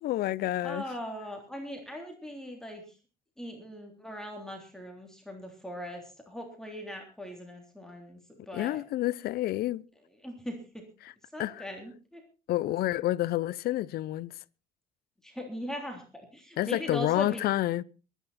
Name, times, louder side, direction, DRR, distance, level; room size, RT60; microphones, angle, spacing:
voice 1, 0.0-0.8 8.5-9.8 11.0-11.1 11.4-11.5 12.5-14.3 16.6-17.8, left 15 dB, 65° left, 0.6 m, -29 dB
voice 2, 0.6-3.0 3.4-8.8 10.2-10.6 11.3-12.2 15.2-17.5, equal, 5° left, 3.5 m, -40 dB
22.5 x 10.0 x 4.2 m
cardioid pair, 110°, 17 cm